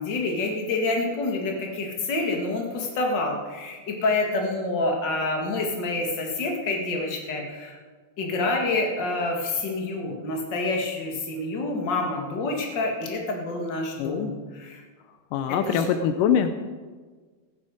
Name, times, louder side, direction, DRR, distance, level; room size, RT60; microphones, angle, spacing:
voice 1, 0.0-7.8 8.2-14.8 15.5-15.9, left 2 dB, 40° left, 1 dB, 1.9 m, -27 dB
voice 2, 14.0-14.3 15.3-16.5, left 8 dB, 90° left, 9 dB, 1.9 m, -23 dB
15.5 x 10.5 x 4.9 m, 1.4 s
omnidirectional pair, 4.5 m